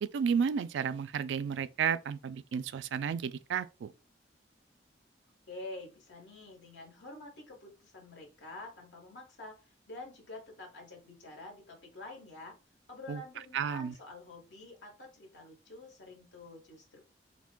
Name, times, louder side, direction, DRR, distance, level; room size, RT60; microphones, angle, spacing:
voice 1, 0.0-3.9 13.1-13.2 13.5-13.9, right 7 dB, 75° right, 0.3 m, -32 dB
voice 2, 5.5-12.6 12.9-17.0, left 2 dB, 80° left, 1.4 m, -48 dB
5.9 x 2.2 x 2.2 m
head